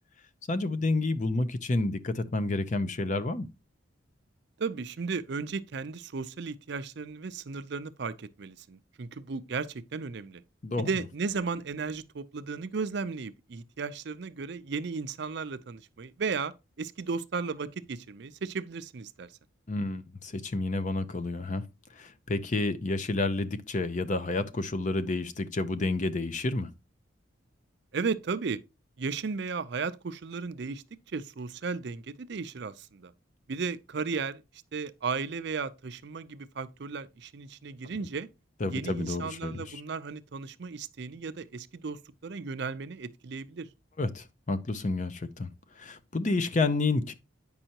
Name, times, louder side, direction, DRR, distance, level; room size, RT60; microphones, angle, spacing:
voice 1, 0.5-3.5 10.6-10.9 19.7-21.6 21.9-26.7 38.6-39.8 44.0-45.5 45.8-47.1, left 2 dB, 40° left, 0.6 m, -30 dB
voice 2, 4.6-10.4 10.8-16.5 16.8-19.3 27.9-28.6 29.0-30.8 31.1-33.1 33.5-34.4 34.7-38.3 38.7-43.7, right 4 dB, 55° right, 0.5 m, -35 dB
8.9 x 5.4 x 2.8 m
head